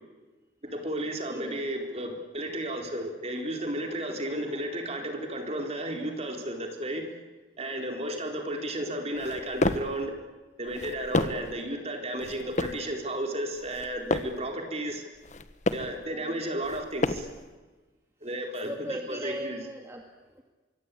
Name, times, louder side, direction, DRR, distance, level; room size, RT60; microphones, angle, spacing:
voice 1, 0.6-7.0 7.6-10.1 10.6-15.0 15.7-17.3 18.2-19.6, right 1 dB, 35° right, 3 dB, 4.2 m, -33 dB
voice 2, 1.3-1.6 16.1-16.4 18.7-20.4, equal, 15° right, 2 dB, 2.0 m, -39 dB
sound 1, 9.2-10.0 10.7-11.5 12.2-12.9 13.6-14.4 15.2-16.0 16.6-17.4, left 2 dB, 40° left, 1.3 m, -30 dB
25.0 x 24.0 x 8.5 m, 1.3 s
head